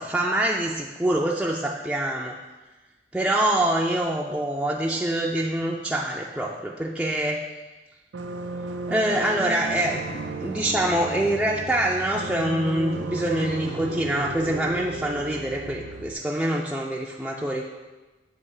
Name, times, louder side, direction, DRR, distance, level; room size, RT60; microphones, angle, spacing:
voice 1, 0.0-2.4 3.1-7.4 8.9-17.6, right 1 dB, 5° right, -3 dB, 0.4 m, -25 dB
sound 1, 8.1-16.1, right 3 dB, 85° right, 0.5 m, -34 dB
8.0 x 2.9 x 5.4 m, 1.2 s
head